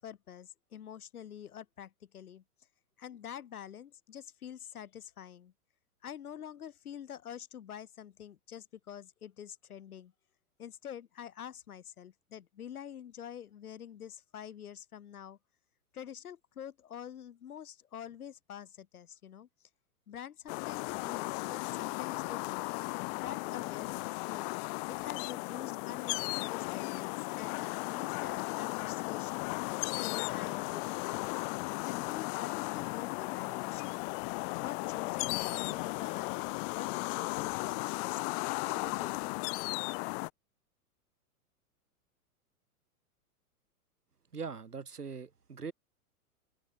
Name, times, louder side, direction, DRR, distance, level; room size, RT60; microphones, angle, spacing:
voice 1, 0.0-2.4 3.0-5.5 6.0-10.1 10.6-15.4 15.9-19.5 20.1-22.7 23.1-31.3 31.9-34.1 34.6-36.5 36.8-38.5 38.7-39.4, left 9 dB, 70° left, 7.5 m, -46 dB
sound 1, 20.5-40.3, left 35 dB, 35° left, 0.8 m, -36 dB
voice 2, 44.3-45.7, right 5 dB, 90° right, 5.1 m, -41 dB
open air
hypercardioid pair, 110°, 45 cm